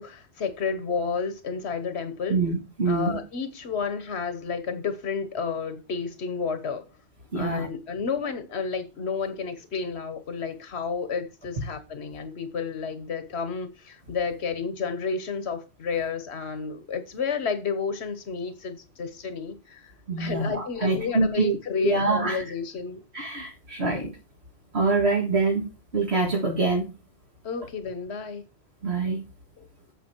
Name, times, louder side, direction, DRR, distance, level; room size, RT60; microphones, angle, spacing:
voice 1, 0.0-2.4 2.9-6.8 7.3-19.9 20.2-23.0 27.4-28.4 29.6-29.7, left 5 dB, 85° left, 1.4 m, -31 dB
voice 2, 2.3-3.2 7.3-7.7 20.1-21.6 21.8-22.4 23.1-24.1 24.7-25.7 25.9-26.9 28.8-29.2, right 3 dB, 80° right, 2.1 m, -25 dB
10.0 x 7.2 x 4.5 m
omnidirectional pair, 1.1 m